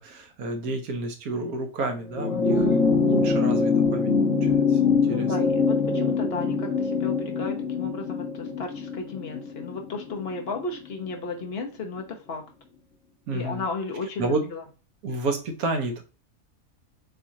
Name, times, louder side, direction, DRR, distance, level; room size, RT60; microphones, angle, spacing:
voice 1, 0.0-5.3 13.3-13.7 14.2-14.4 15.0-16.0, right 2 dB, 75° right, 5 dB, 1.4 m, -31 dB
sound 1, 2.1-10.8 12.0-12.1, left 4 dB, 65° left, 1.2 m, -24 dB
voice 2, 2.3-2.9 5.0-12.5 13.3-14.6, left 4 dB, 45° left, 2 dB, 1.1 m, -34 dB
7.3 x 2.5 x 2.8 m, 0.34 s
omnidirectional pair, 1.6 m